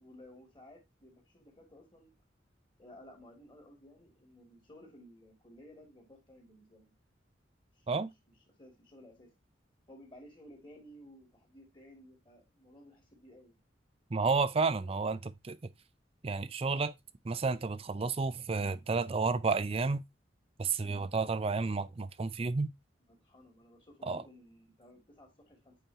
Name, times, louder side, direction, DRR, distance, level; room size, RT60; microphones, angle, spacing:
voice 1, 0.0-2.1 2.8-6.9 7.8-7.9 8.6-9.3 9.9-13.6 23.1-25.8, left 1 dB, 25° left, 2.4 m, -56 dB
voice 2, 14.1-15.6 16.2-16.9 17.2-20.0 20.6-22.7 24.1-24.2, right 4 dB, 30° right, 0.5 m, -31 dB
8.9 x 4.4 x 2.7 m
head